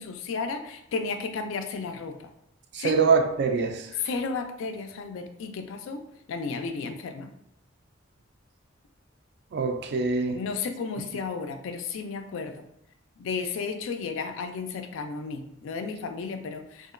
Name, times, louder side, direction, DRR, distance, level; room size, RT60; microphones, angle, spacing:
voice 1, 0.0-2.3 2.8-3.0 4.0-6.0 6.3-7.3 10.3-12.6 13.2-16.9, left 4 dB, 75° left, 0.3 m, -33 dB
voice 2, 2.7-3.9 9.5-10.4, right 5 dB, 55° right, 0.3 m, -24 dB
2.8 x 2.4 x 2.4 m
head